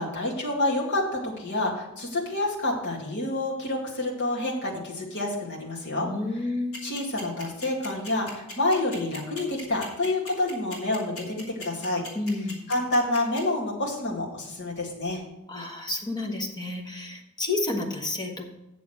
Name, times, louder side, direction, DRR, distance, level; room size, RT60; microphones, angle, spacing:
voice 1, 0.0-6.1 6.8-12.0 12.7-15.2, left 2 dB, 55° left, -2 dB, 2.4 m, -28 dB
voice 2, 6.0-6.9 12.1-12.7 15.5-18.5, left 2 dB, 20° left, 2 dB, 1.4 m, -30 dB
sound 1, 6.7-13.4, left 2 dB, 80° left, 3.1 m, -39 dB
8.4 x 6.9 x 6.3 m, 0.89 s
head